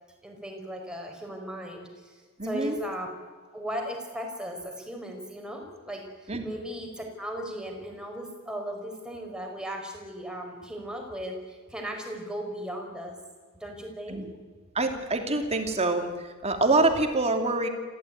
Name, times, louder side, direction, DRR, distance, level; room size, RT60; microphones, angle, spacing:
voice 1, 0.2-3.1 3.5-13.2 13.5-14.2, equal, 5° right, 2 dB, 4.8 m, -37 dB
voice 2, 2.4-2.8 6.3-6.4 14.1-14.3 14.7-17.7, right 2 dB, 30° right, 5 dB, 2.7 m, -25 dB
27.0 x 15.5 x 9.4 m, 1.4 s
head